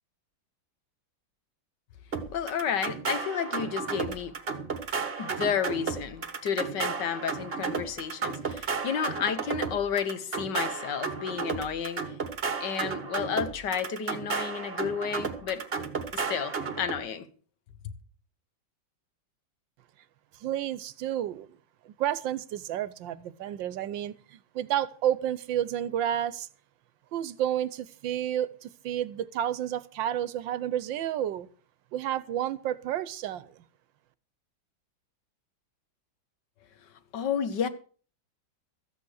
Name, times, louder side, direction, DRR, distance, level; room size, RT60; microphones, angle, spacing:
sound 1, 2.1-17.0, right 5 dB, 35° right, 1.4 m, -33 dB
voice 1, 2.3-4.3 5.2-12.0 12.6-15.6 16.1-17.2 37.1-37.7, left 7 dB, 65° left, 1.6 m, -31 dB
voice 2, 20.4-21.6 21.8-26.5 27.1-31.5 31.9-33.6, right 11 dB, 75° right, 1.4 m, -31 dB
13.5 x 8.5 x 6.3 m
omnidirectional pair, 2.1 m